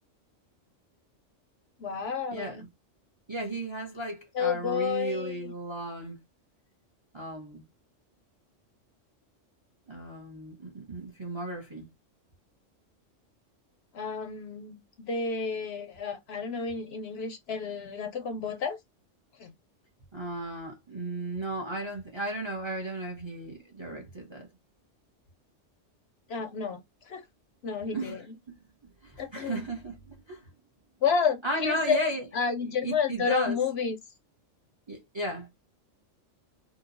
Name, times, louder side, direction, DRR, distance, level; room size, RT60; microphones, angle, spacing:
voice 1, 1.8-2.6 4.3-5.5 13.9-18.8 19.4-19.5 26.3-26.8 27.1-27.2 27.6-28.2 29.2-29.7 31.0-32.0 32.3-34.0, left 6 dB, 65° left, 0.7 m, -30 dB
voice 2, 2.3-2.7 3.3-6.2 7.1-7.6 9.9-11.9 20.1-24.5 27.9-28.5 29.0-30.5 31.4-32.3 32.8-33.6 34.9-35.5, right 1 dB, 30° right, 0.6 m, -35 dB
2.8 x 2.1 x 2.4 m
omnidirectional pair, 1.3 m